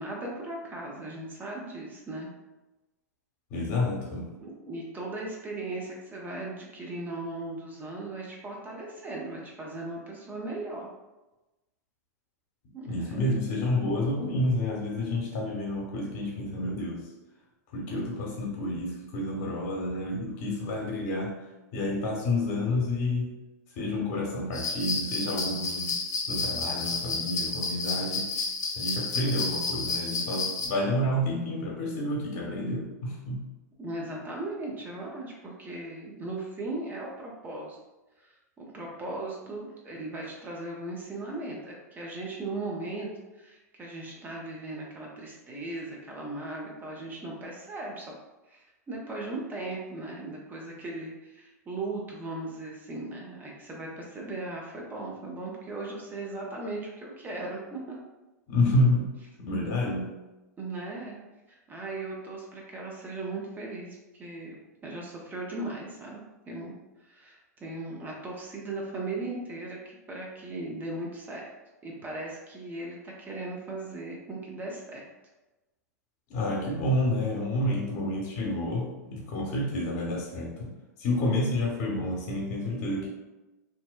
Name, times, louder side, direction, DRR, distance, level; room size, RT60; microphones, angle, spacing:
voice 1, 0.0-2.3 4.4-10.9 12.7-13.5 33.8-37.8 38.2-48.0 48.5-58.0 60.6-61.2 61.5-64.6 64.8-66.7 67.0-71.4 71.8-75.0, right 2 dB, 20° right, -2 dB, 0.6 m, -38 dB
voice 2, 3.5-4.2 12.9-17.0 17.7-21.3 21.7-23.3 23.8-25.9 26.3-28.3 28.7-33.4 58.5-59.1 59.4-60.1 76.3-80.7 81.0-83.1, left 1 dB, 50° left, -2 dB, 0.9 m, -29 dB
sound 1, 24.5-30.7, left 4 dB, 80° left, 0.6 m, -31 dB
2.6 x 2.0 x 2.2 m, 1.1 s
hypercardioid pair, 105°, 9 cm